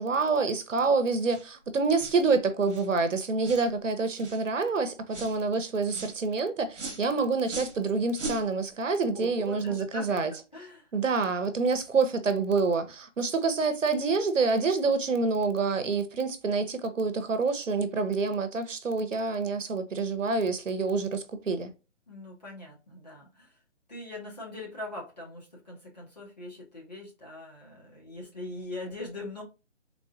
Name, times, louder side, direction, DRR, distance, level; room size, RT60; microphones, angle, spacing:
voice 1, 0.0-10.3 10.9-21.7, right 4 dB, 85° right, 0.8 m, -27 dB
sound 1, 1.3-1.5 2.0-2.2 2.7-2.9 3.4-3.7 4.2-4.4 5.1-5.4 5.9-6.2 6.7-7.0 7.5-7.8 8.1-8.4, right 2 dB, 65° right, 1.1 m, -39 dB
voice 2, 9.1-10.2 10.5-10.9 22.1-23.6 23.9-29.4, left 2 dB, 35° left, 1.3 m, -41 dB
3.7 x 2.6 x 2.4 m
hypercardioid pair, 180°, 37 cm